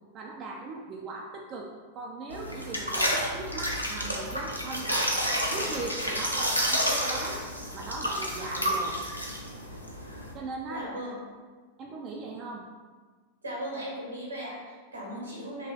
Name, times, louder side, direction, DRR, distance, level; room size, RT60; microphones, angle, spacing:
voice 1, 0.1-7.4 7.7-9.0 10.3-10.9 11.8-12.7, right 3 dB, 35° right, -1 dB, 0.4 m, -39 dB
sound 1, 2.3-10.3, equal, 90° left, 0.5 m, -30 dB
voice 2, 10.7-11.1 13.4-15.7, equal, 80° right, -4 dB, 1.4 m, -37 dB
3.0 x 2.8 x 3.7 m, 1.4 s
figure-of-eight pair, 90°, 0 cm